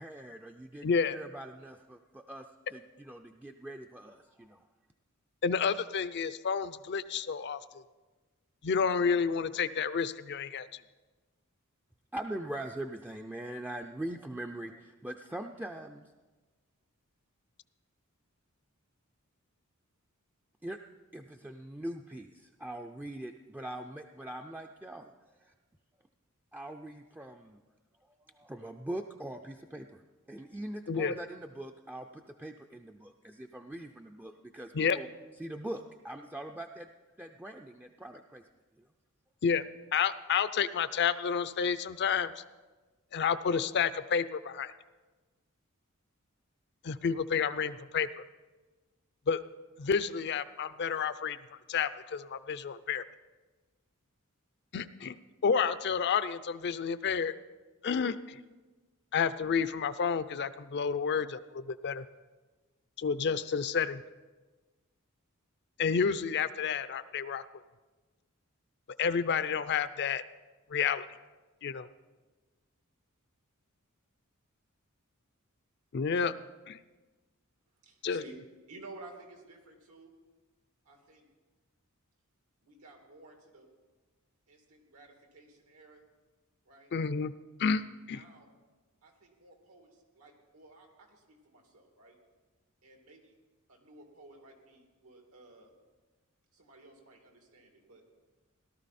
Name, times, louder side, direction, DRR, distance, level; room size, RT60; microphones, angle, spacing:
voice 1, 0.0-4.6 12.1-16.1 20.6-20.8 21.1-25.1 25.4-25.5 26.5-27.6 28.3-30.0 30.3-35.1 35.4-36.9 37.2-38.4, right 1 dB, 10° right, 3 dB, 0.4 m, -42 dB
voice 2, 0.8-1.2 5.4-7.8 8.6-10.8 30.9-31.2 34.7-35.0 39.4-39.6 39.9-42.4 43.1-44.7 46.8-48.2 49.3-49.4 49.8-51.4 51.7-53.0 54.7-55.2 55.4-57.3 57.8-58.4 59.1-62.1 63.0-64.0 65.8-67.4 69.0-70.2 70.7-71.1 71.6-71.9 75.9-76.3 76.7-76.8 78.0-78.2 86.9-87.3 87.6-88.2, left 6 dB, 50° left, 14 dB, 0.5 m, -30 dB
voice 3, 77.8-78.3 78.7-80.1 80.8-81.3 82.6-83.7 84.5-86.0 86.7-86.9 88.1-88.5 89.0-92.2 92.8-93.4 93.7-95.7 96.5-98.0, right 2 dB, 90° right, 2 dB, 2.5 m, -54 dB
17.5 x 12.5 x 4.2 m, 1.3 s
head